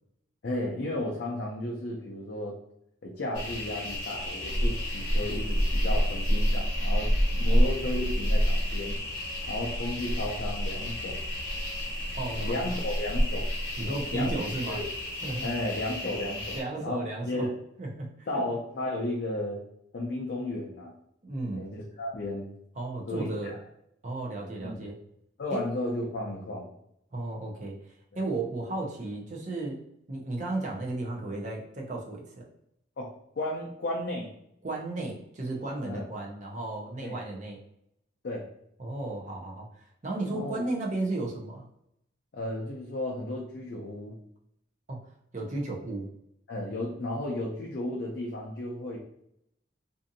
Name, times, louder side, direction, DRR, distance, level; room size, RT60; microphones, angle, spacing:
voice 1, 0.4-2.5 3.0-9.0 9.5-11.2 12.4-13.5 13.8-14.3 14.7-14.9 15.4-17.5 18.3-19.6 19.9-20.9 21.5-22.5 23.1-23.6 24.6-24.9 25.4-26.7 33.0-34.3 35.8-36.1 37.0-37.2 38.2-38.5 40.3-40.6 42.3-44.2 46.5-49.0, left 1 dB, 55° left, -2 dB, 0.4 m, -34 dB
sound 1, 3.3-16.6, equal, 85° left, 0.8 m, -29 dB
voice 2, 12.2-12.8 13.8-14.8 15.2-15.5 16.5-17.5 17.8-18.4 21.2-21.7 22.8-23.5 24.0-24.9 25.5-25.6 27.1-27.8 28.1-29.8 30.1-32.4 34.6-37.6 38.8-39.7 40.0-41.6 44.9-45.0 45.3-46.1, right 2 dB, 40° right, -1 dB, 0.6 m, -34 dB
2.6 x 2.5 x 2.6 m, 0.75 s
head